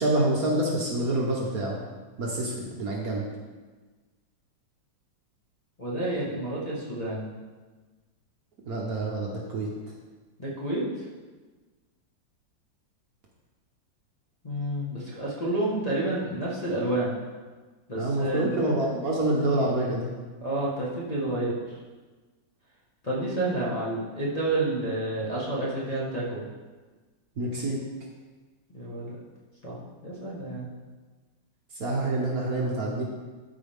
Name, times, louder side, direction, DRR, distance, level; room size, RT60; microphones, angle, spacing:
voice 1, 0.0-1.8 2.2-3.2 8.7-9.7 18.0-20.1 27.4-27.8 31.8-33.0, right 1 dB, 55° right, -2 dB, 1.4 m, -27 dB
voice 2, 5.8-7.3 10.4-10.8 14.4-17.1 17.9-18.6 20.4-21.5 23.0-26.4 28.7-29.1 29.6-30.7, right 1 dB, 20° left, -8 dB, 1.5 m, -29 dB
13.0 x 4.8 x 3.6 m, 1.3 s
omnidirectional pair, 2.1 m